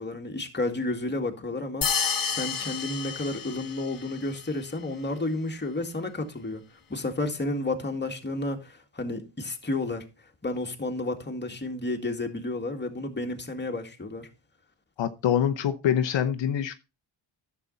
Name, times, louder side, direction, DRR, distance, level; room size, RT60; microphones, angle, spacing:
voice 1, 0.0-6.6 6.9-10.0 10.4-14.3, left 2 dB, 25° left, 2.0 m, -31 dB
sound 1, 1.8-4.1, left 6 dB, 50° left, 1.3 m, -30 dB
voice 2, 15.0-16.7, left 9 dB, 75° left, 0.9 m, -25 dB
11.0 x 7.1 x 4.0 m
cardioid pair, 85°, 45 cm